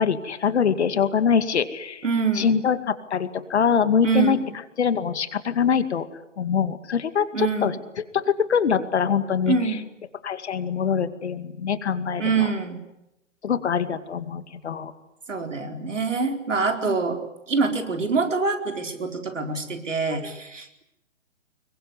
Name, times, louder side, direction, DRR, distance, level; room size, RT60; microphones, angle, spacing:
voice 1, 0.0-2.0 2.3-4.4 4.8-6.1 6.4-7.8 8.1-9.5 10.2-12.5 13.4-14.9 16.9-17.0 20.1-20.3, left 7 dB, 65° left, 11 dB, 2.3 m, -24 dB
voice 2, 2.0-2.6 4.0-4.5 7.3-7.7 9.5-9.9 12.2-12.8 15.3-17.2 17.5-20.8, right 4 dB, 85° right, 5 dB, 4.5 m, -25 dB
25.5 x 22.5 x 9.8 m, 0.89 s
figure-of-eight pair, 130°, 36 cm